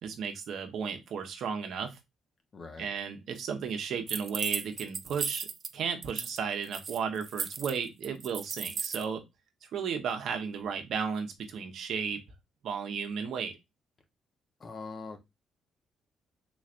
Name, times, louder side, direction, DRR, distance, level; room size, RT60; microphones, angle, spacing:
voice 1, 0.0-2.0 2.8-5.5 5.7-9.2 9.7-12.2 12.6-13.5, right 6 dB, 70° right, 0.9 m, -34 dB
voice 2, 2.5-2.9 14.6-15.2, left 4 dB, 40° left, 1.0 m, -42 dB
sound 1, 4.1-5.7 6.0-6.4 6.6-9.0, right 5 dB, 45° right, 0.4 m, -35 dB
3.9 x 3.2 x 2.5 m
cardioid pair, 90°, 0 cm